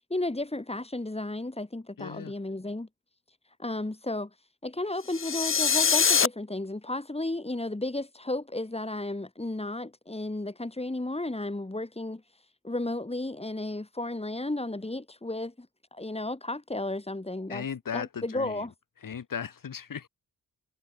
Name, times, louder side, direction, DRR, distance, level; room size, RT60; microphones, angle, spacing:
voice 1, 0.1-2.9 3.6-4.3 4.6-15.7 15.9-17.7 17.9-18.7, left 2 dB, 15° left, 7.1 m, -33 dB
voice 2, 2.0-2.3 17.5-18.7 19.0-20.1, left 7 dB, 65° left, 5.2 m, -37 dB
sound 1, 5.1-6.3, left 6 dB, 35° left, 0.9 m, -23 dB
cardioid pair, 65°, 35 cm